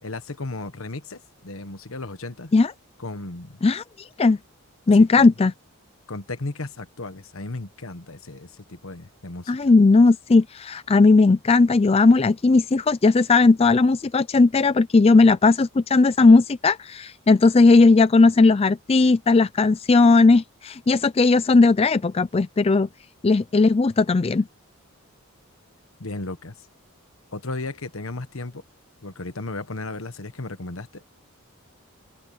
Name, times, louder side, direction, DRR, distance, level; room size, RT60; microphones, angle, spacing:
voice 1, 0.0-2.5 3.0-3.6 4.9-5.3 6.1-9.7 26.0-26.5 27.3-28.6 29.0-31.0, left 2 dB, 65° left, 1.4 m, -35 dB
voice 2, 3.6-4.4 4.9-5.5 9.5-22.9 23.2-24.4, left 3 dB, 25° left, 0.4 m, -17 dB
open air
head